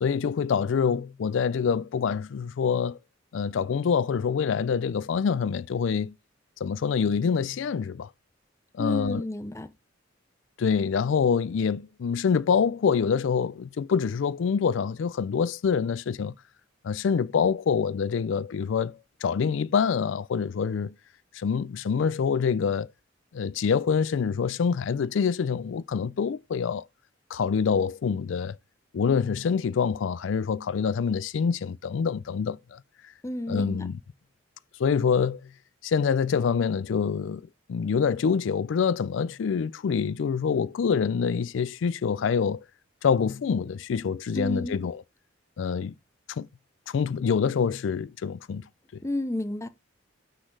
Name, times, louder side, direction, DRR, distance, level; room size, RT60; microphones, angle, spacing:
voice 1, 0.0-3.0 3.3-6.1 6.6-8.1 8.7-9.2 10.6-16.3 16.8-20.9 21.3-22.9 23.3-26.8 27.3-28.6 28.9-32.8 33.5-34.0 34.8-35.4 35.8-37.4 37.7-42.6 43.0-45.0 45.6-45.9 46.3-46.5 46.9-48.6, left 6 dB, 75° left, 0.4 m, -26 dB
voice 2, 8.8-9.7 33.2-33.8 44.3-44.8 49.0-49.7, left 1 dB, 15° left, 0.6 m, -31 dB
6.3 x 3.9 x 4.7 m
head